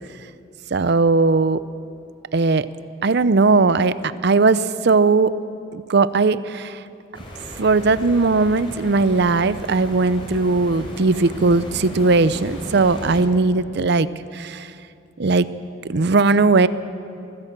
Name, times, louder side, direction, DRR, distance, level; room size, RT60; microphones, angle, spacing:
voice 1, 0.7-1.6 2.3-2.7 3.0-4.0 4.2-5.3 5.7-6.8 7.6-14.1 14.3-14.7 15.2-15.5 15.9-16.7, right 3 dB, 60° right, 15 dB, 0.6 m, -18 dB
sound 1, 7.1-13.2, equal, 30° left, 4.0 m, -36 dB
23.5 x 15.5 x 7.5 m, 2.6 s
head